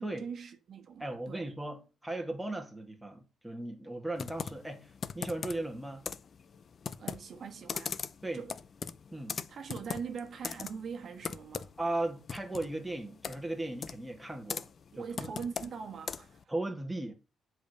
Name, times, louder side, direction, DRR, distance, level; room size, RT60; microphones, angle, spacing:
voice 1, 0.2-1.5 7.0-8.0 8.3-8.6 9.5-11.7 14.9-16.5, right 6 dB, 55° right, 1.4 m, -42 dB
voice 2, 1.0-6.1 8.2-8.4 9.1-9.4 11.8-14.7 15.0-15.3 16.5-17.1, right 2 dB, 5° right, 2.2 m, -37 dB
Computer keyboard, 4.2-16.4, left 6 dB, 45° left, 0.7 m, -41 dB
7.9 x 4.8 x 6.7 m
cardioid pair, 90°, 0 cm